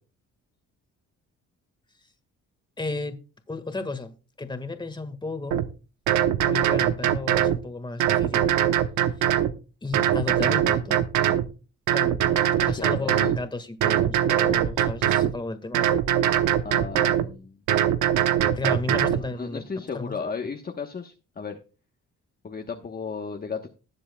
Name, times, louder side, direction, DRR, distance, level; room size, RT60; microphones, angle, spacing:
voice 1, 2.8-3.2 3.5-5.6 6.4-8.5 9.8-11.0 11.9-12.2 12.6-16.0 18.6-20.3, left 3 dB, 15° left, 1.7 m, -33 dB
sound 1, 5.5-5.7 6.1-7.6 8.0-9.5 9.9-11.5 11.9-13.4 13.8-15.3 15.7-17.3 17.7-19.2, right 11 dB, 90° right, 0.9 m, -22 dB
voice 2, 12.6-13.3 16.6-17.6 18.5-18.6 19.1-21.6 22.4-23.7, left 5 dB, 30° left, 1.1 m, -35 dB
19.5 x 7.5 x 2.3 m
cardioid pair, 90°, 30 cm